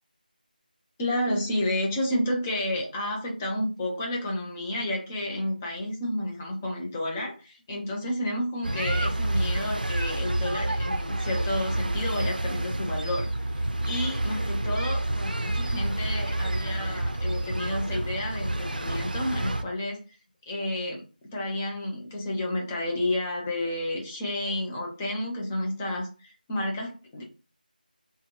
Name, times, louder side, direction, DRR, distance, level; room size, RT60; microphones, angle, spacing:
voice 1, 1.0-20.2 20.5-27.2, left 1 dB, 10° left, -1 dB, 0.6 m, -31 dB
sound 1, 8.6-19.6, right 1 dB, 65° right, 0.6 m, -29 dB
3.5 x 2.2 x 2.9 m, 0.33 s
figure-of-eight pair, 165°, 5 cm